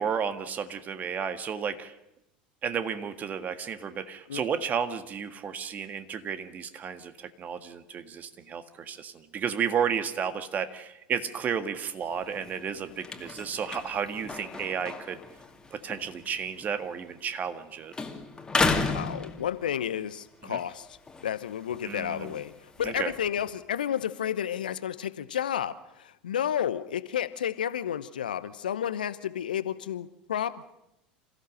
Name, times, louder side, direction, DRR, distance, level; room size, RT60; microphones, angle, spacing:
voice 1, 0.0-1.9 2.6-15.2 15.7-17.9 20.4-20.6 21.8-22.4 22.8-23.1, right 7 dB, 35° right, 10 dB, 1.6 m, -32 dB
sound 1, 12.0-17.7 17.9-20.0 20.4-23.5, left 3 dB, 15° left, 2.4 m, -34 dB
voice 2, 18.8-22.5 22.8-30.7, left 9 dB, 75° left, 14 dB, 0.9 m, -31 dB
27.0 x 15.0 x 6.5 m, 0.88 s
figure-of-eight pair, 75°, 5 cm